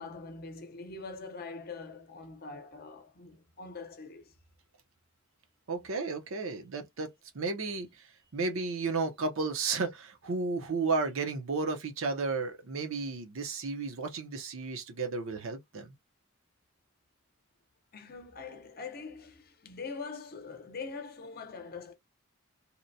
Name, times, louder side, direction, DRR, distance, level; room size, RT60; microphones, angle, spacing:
voice 1, 0.0-4.3 6.7-6.9 17.9-21.9, left 4 dB, 45° left, 0.7 m, -43 dB
voice 2, 5.7-15.9, right 4 dB, 65° right, 0.7 m, -33 dB
2.9 x 2.1 x 2.6 m
head